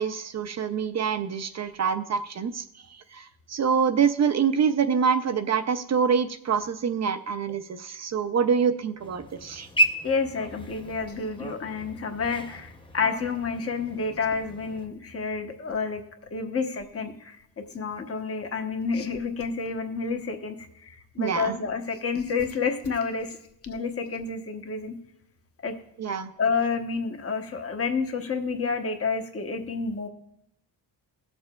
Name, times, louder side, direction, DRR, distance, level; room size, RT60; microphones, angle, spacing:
voice 1, 0.0-2.6 3.1-9.7 21.2-21.6 26.0-26.3, right 6 dB, 40° right, 10 dB, 0.4 m, -25 dB
sound 1, 9.0-14.9, right 1 dB, 15° left, 0.6 m, -32 dB
voice 2, 10.0-16.0 16.3-17.4 17.7-20.6 20.8-23.4 23.6-24.9 25.6-25.7 26.4-30.1, left 4 dB, 35° left, 5 dB, 0.9 m, -29 dB
18.0 x 6.6 x 2.2 m, 0.79 s
wide cardioid pair, 130°, 41 cm